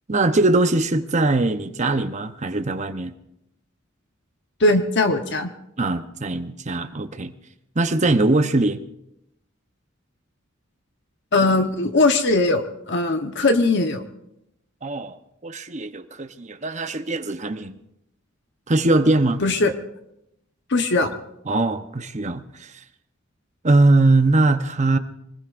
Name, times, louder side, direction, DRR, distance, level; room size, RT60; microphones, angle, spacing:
voice 1, 0.1-3.1 5.8-7.3 7.8-8.8 14.8-15.2 15.4-17.8 18.7-19.4 21.5-22.7 23.6-25.0, right 2 dB, 35° right, 8 dB, 0.9 m, -21 dB
voice 2, 4.6-5.5 11.3-14.0 19.4-19.7 20.7-21.1, left 2 dB, 60° left, 6 dB, 1.1 m, -20 dB
25.5 x 20.0 x 2.6 m, 0.82 s
head